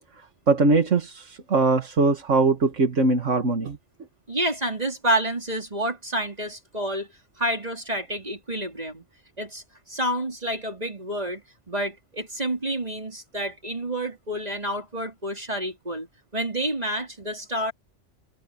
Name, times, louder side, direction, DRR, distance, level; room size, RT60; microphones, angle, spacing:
voice 1, 0.5-3.8, right 3 dB, 75° right, 2.3 m, -21 dB
voice 2, 4.3-7.1 7.4-9.0 9.4-16.1 16.3-17.7, right 1 dB, 30° right, 4.4 m, -29 dB
omnidirectional pair, 1.3 m